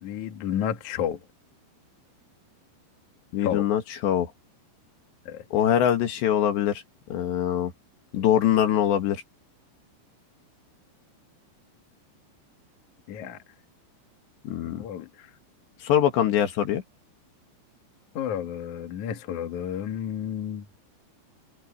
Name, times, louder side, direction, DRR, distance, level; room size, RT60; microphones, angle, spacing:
voice 1, 0.0-1.2 3.4-3.7 5.3-5.4 13.1-13.4 14.6-15.3 18.1-20.6, left 9 dB, 55° left, 2.5 m, -31 dB
voice 2, 3.3-4.3 5.5-6.8 7.1-7.7 8.1-9.2 14.4-14.8 15.8-16.8, left 10 dB, 70° left, 4.2 m, -23 dB
omnidirectional pair, 5.3 m